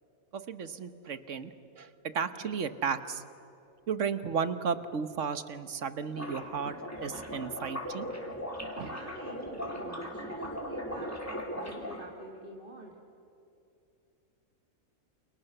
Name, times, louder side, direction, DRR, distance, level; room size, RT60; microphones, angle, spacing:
voice 1, 0.3-3.2 3.9-6.8 7.0-8.1 8.8-8.9, right 6 dB, 55° right, 11 dB, 1.4 m, -34 dB
sound 1, 6.1-12.0, equal, 10° left, 3.5 m, -38 dB
voice 2, 8.9-12.9, right 2 dB, 35° right, -1 dB, 2.4 m, -46 dB
29.5 x 29.0 x 6.8 m, 2.7 s
omnidirectional pair, 1.6 m